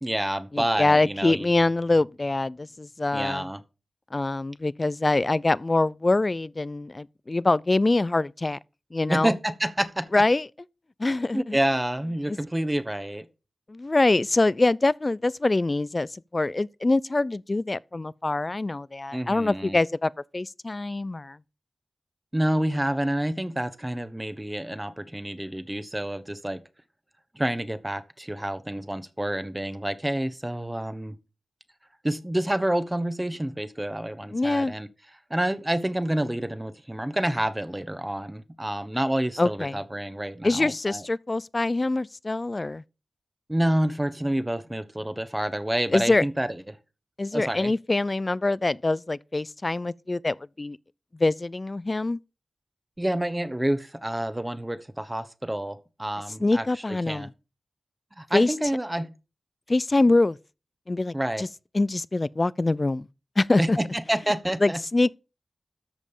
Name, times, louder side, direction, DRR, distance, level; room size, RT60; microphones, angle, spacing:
voice 1, 0.0-1.5 3.1-3.6 9.1-10.1 11.3-13.3 19.1-19.8 22.3-26.6 27.3-31.2 32.0-34.9 35.3-41.0 43.5-46.8 47.3-47.7 53.0-57.3 58.2-59.1 61.1-61.4 63.6-64.8, right 1 dB, 15° right, 1.1 m, -28 dB
voice 2, 0.5-3.5 4.1-8.6 8.9-9.3 10.1-10.5 11.0-11.6 12.3-12.4 13.7-21.4 34.3-34.7 39.4-39.8 40.4-42.8 45.9-46.2 47.2-50.8 51.2-52.2 56.4-57.3 58.3-58.5 59.7-60.4 60.9-61.5 61.7-63.1 63.4-63.8 64.6-65.1, left 2 dB, 40° left, 0.4 m, -24 dB
13.5 x 5.2 x 5.5 m
wide cardioid pair, 60°, 0 cm